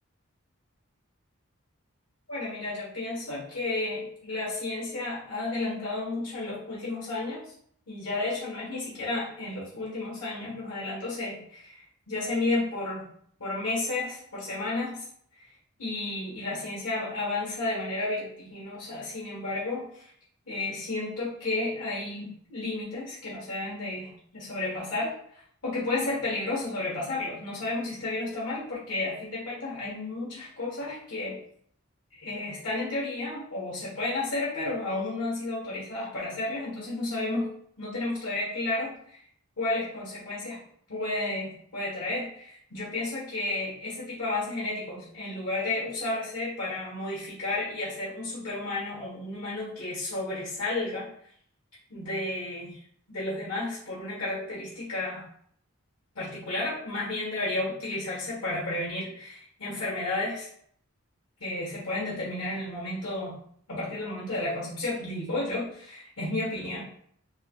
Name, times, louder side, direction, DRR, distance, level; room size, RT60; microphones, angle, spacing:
voice 1, 2.3-7.5 7.9-13.0 13.4-15.1 15.8-20.1 20.5-31.4 32.1-39.2 39.6-40.6 40.9-51.1 51.9-52.8 53.1-55.2 56.1-60.5 61.4-63.3 63.7-66.9, left 2 dB, 85° left, -6 dB, 1.2 m, -32 dB
5.5 x 2.1 x 2.3 m, 0.62 s
head